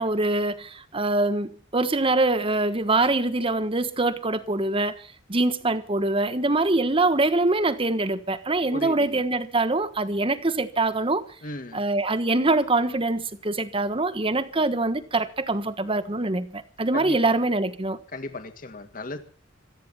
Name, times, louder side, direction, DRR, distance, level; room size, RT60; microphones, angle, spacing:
voice 1, 0.0-11.2 11.7-18.0, right 2 dB, 30° right, 1.3 m, -24 dB
voice 2, 8.7-9.2 11.4-11.8 16.9-17.3 18.1-19.2, left 2 dB, 50° left, 2.0 m, -36 dB
26.0 x 9.4 x 5.7 m
head